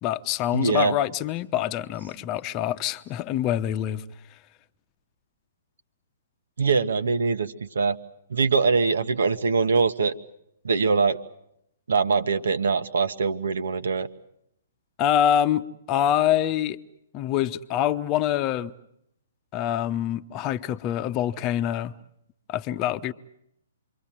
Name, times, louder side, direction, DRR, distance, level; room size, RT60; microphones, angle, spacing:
voice 1, 0.0-4.0 15.0-16.8 17.1-18.7 19.5-21.9 22.5-23.1, left 11 dB, 30° left, 1.0 m, -25 dB
voice 2, 0.5-0.9 6.6-8.0 8.3-10.1 10.6-11.2 11.9-14.1, right 4 dB, 65° right, 1.4 m, -23 dB
28.0 x 24.0 x 7.5 m
figure-of-eight pair, 120°, 0 cm